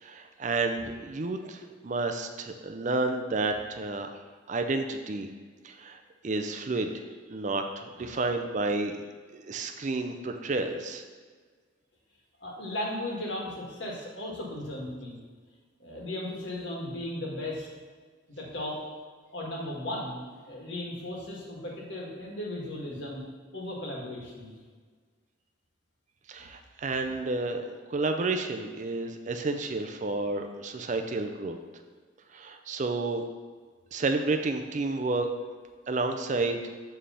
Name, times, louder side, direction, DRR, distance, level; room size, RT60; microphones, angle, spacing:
voice 1, 0.0-4.1 4.5-5.3 5.6-6.0 6.2-7.0 7.3-9.0 9.3-11.0 26.3-27.6 27.9-31.6 32.3-33.2 33.9-35.3 35.9-36.7, right 3 dB, 40° right, 6 dB, 0.4 m, -30 dB
voice 2, 12.4-15.2 15.8-17.7 18.3-18.8 19.3-23.3 23.5-24.5, left 1 dB, 65° left, -3 dB, 1.6 m, -36 dB
7.4 x 3.4 x 5.6 m, 1.5 s
head